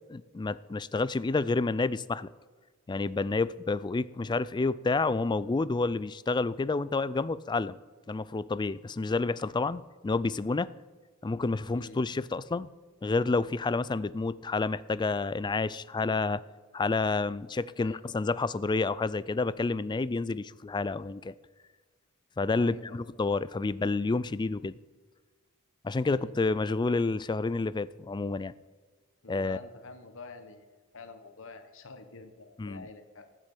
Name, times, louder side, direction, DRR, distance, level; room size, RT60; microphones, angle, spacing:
voice 1, 0.1-2.3 2.9-7.8 8.1-10.7 11.2-12.7 13.0-16.4 16.7-21.3 22.4-24.7 25.8-28.5 29.3-29.6 32.6-32.9, left 3 dB, 20° left, 18 dB, 0.3 m, -29 dB
voice 2, 11.7-12.1 17.8-18.0 22.5-23.0 26.0-26.4 29.2-33.2, left 3 dB, 65° left, 7 dB, 1.4 m, -48 dB
14.5 x 6.3 x 8.3 m, 1.4 s
head